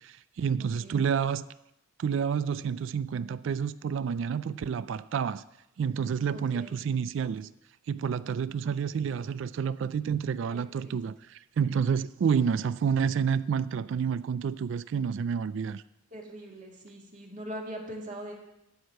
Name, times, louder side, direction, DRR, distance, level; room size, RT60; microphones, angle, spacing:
voice 1, 0.0-1.4 2.0-5.4 5.8-7.5 7.9-15.8, right 7 dB, 65° right, 15 dB, 0.3 m, -29 dB
voice 2, 0.6-1.0 6.3-6.8 10.5-10.9 16.1-18.3, equal, 40° right, -1 dB, 2.2 m, -42 dB
13.0 x 4.8 x 7.8 m, 0.88 s
head